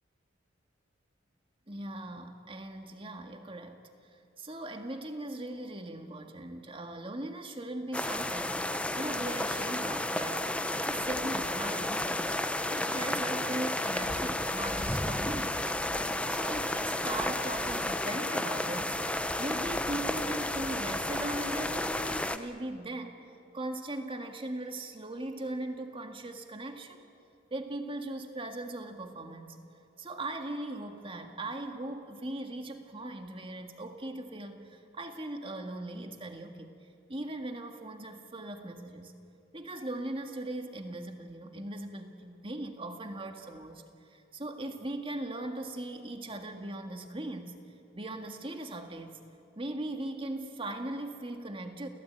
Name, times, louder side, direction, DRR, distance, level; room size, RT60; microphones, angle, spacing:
voice 1, 1.7-3.8 4.4-12.4 12.7-15.8 16.3-23.2 23.5-27.0 27.5-29.6 30.0-36.8 37.1-39.1 39.5-43.8 44.1-47.6 47.9-49.2 49.6-51.9, right 1 dB, 25° right, 5 dB, 1.9 m, -39 dB
sound 1, 7.9-22.4, left 1 dB, 5° left, 0.8 m, -32 dB
29.5 x 17.0 x 9.1 m, 2.6 s
head